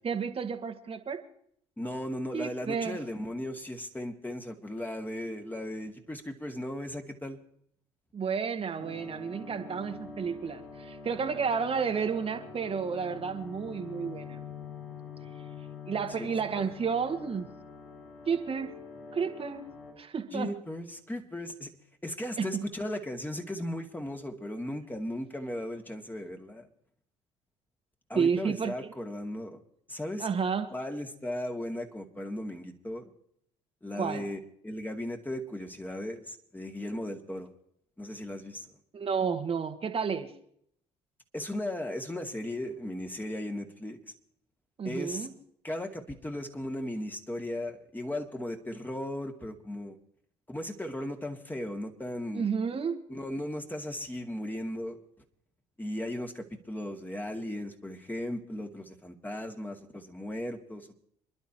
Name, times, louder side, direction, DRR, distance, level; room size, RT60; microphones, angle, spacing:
voice 1, 0.0-1.2 2.3-3.0 8.1-14.4 15.8-17.5 18.3-18.7 19.1-19.6 20.0-20.5 22.4-22.6 28.1-28.7 30.2-30.7 33.9-34.2 38.9-40.3 44.8-45.3 52.3-53.0, right 6 dB, 40° right, 1.7 m, -31 dB
voice 2, 1.8-7.4 16.2-16.7 20.3-21.7 22.0-26.7 28.1-29.6 29.9-30.3 30.7-33.1 33.8-37.5 38.0-38.7 41.3-44.0 44.8-45.3 45.6-50.0 50.5-52.5 53.1-55.0 55.8-60.9, left 1 dB, 10° left, 2.4 m, -36 dB
sound 1, 8.8-19.9, left 5 dB, 75° left, 6.5 m, -45 dB
28.0 x 11.5 x 3.0 m
hypercardioid pair, 55°, 15 cm